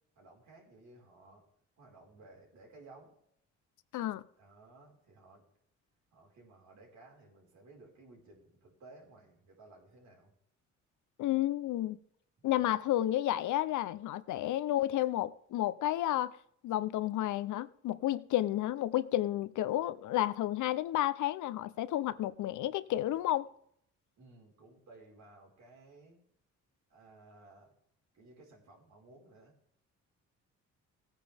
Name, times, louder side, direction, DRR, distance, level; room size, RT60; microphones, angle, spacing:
voice 1, 0.1-1.4 1.8-3.2 4.4-5.4 6.1-10.3 12.4-12.8 24.2-26.2 26.9-27.7 28.1-29.5, right 2 dB, 65° right, 4.7 m, -57 dB
voice 2, 11.2-12.0 12.4-16.4 16.6-23.5, left 14 dB, 75° left, 0.7 m, -31 dB
17.5 x 9.2 x 3.5 m
cardioid pair, 90°, 30 cm